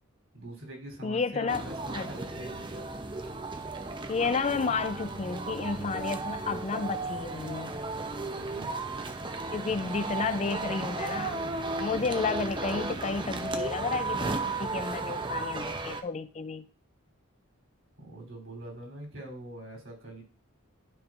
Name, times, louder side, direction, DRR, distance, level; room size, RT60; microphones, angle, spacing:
voice 1, 0.3-2.8 8.2-8.7 18.0-20.2, right 1 dB, 75° right, 3.2 m, -44 dB
voice 2, 1.0-1.7 1.9-2.1 4.1-7.8 9.5-11.5 11.8-16.6, left 4 dB, 35° left, 0.4 m, -31 dB
sound 1, 1.5-16.0, right 3 dB, 25° right, 0.6 m, -34 dB
11.5 x 5.2 x 2.5 m
head